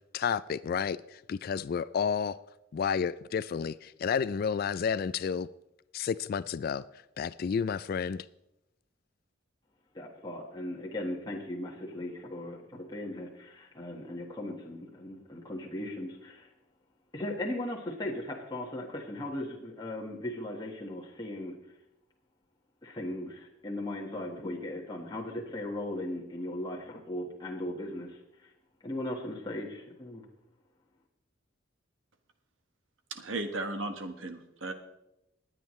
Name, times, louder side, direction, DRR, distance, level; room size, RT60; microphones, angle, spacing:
voice 1, 0.1-2.4 2.7-5.5 5.9-6.8 7.2-8.3, left 6 dB, 50° left, 0.3 m, -31 dB
voice 2, 9.9-16.5 17.1-21.6 22.8-28.5 28.8-30.3, left 1 dB, 20° left, 1.5 m, -38 dB
voice 3, 33.1-34.7, right 2 dB, 85° right, 1.4 m, -35 dB
20.0 x 9.0 x 3.2 m
head